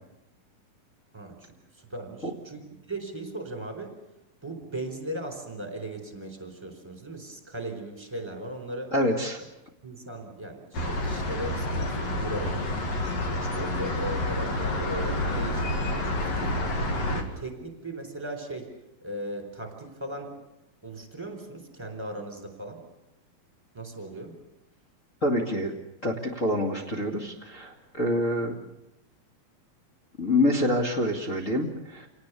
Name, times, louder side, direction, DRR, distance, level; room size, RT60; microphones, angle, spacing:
voice 1, 1.1-3.9 4.4-8.9 9.8-12.8 13.3-16.5 17.1-18.7 19.0-20.3 20.8-22.8 23.7-24.4, right 1 dB, 5° right, 5 dB, 4.2 m, -38 dB
voice 2, 8.9-9.4 25.2-25.7 26.0-28.5 30.2-32.1, left 1 dB, 25° left, -1 dB, 2.0 m, -26 dB
sound 1, 10.7-17.2, left 1 dB, 50° left, 3.1 m, -29 dB
28.0 x 18.5 x 8.4 m, 0.89 s
omnidirectional pair, 4.2 m